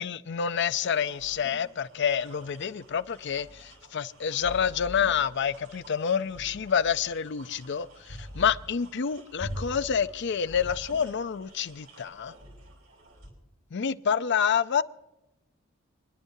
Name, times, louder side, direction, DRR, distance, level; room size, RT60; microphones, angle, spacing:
voice 1, 0.0-12.3 13.7-14.8, left 7 dB, 55° left, 0.5 m, -28 dB
sound 1, 0.7-13.3, equal, 80° right, 4.5 m, -45 dB
27.5 x 10.5 x 2.7 m
head